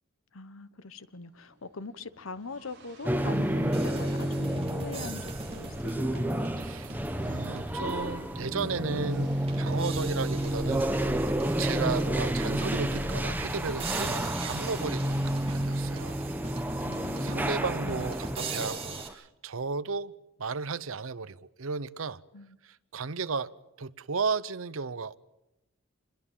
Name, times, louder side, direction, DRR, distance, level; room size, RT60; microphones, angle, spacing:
voice 1, 0.3-6.4 16.8-18.1 22.3-22.6, left 3 dB, 75° left, 1.0 m, -43 dB
sound 1, 0.8-14.9, right 2 dB, 50° right, 5.1 m, -54 dB
sound 2, 3.0-19.1, right 1 dB, 10° right, 1.0 m, -30 dB
sound 3, 3.7-8.1 8.6-8.7 9.5-19.1, right 3 dB, 30° right, 3.1 m, -41 dB
voice 2, 3.7-4.1 6.6-11.3 11.6-16.2 17.1-20.1 20.4-22.2 22.6-23.5 23.8-25.2, right 4 dB, 75° right, 0.8 m, -34 dB
26.0 x 21.5 x 7.4 m
head